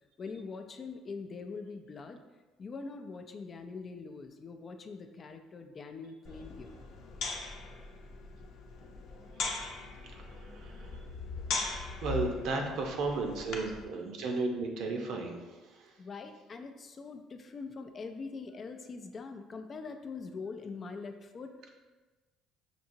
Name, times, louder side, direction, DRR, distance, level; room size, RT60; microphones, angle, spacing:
voice 1, 0.2-2.2 2.6-6.7 11.3-11.5 16.0-21.5, left 4 dB, 35° left, 6 dB, 0.4 m, -43 dB
sound 1, 6.3-13.8, left 3 dB, 70° left, 0.7 m, -40 dB
voice 2, 10.1-11.0 12.0-15.5 15.8-15.9, right 3 dB, 70° right, 2 dB, 0.7 m, -34 dB
5.9 x 2.8 x 2.7 m, 1.2 s
cardioid pair, 115°, 0 cm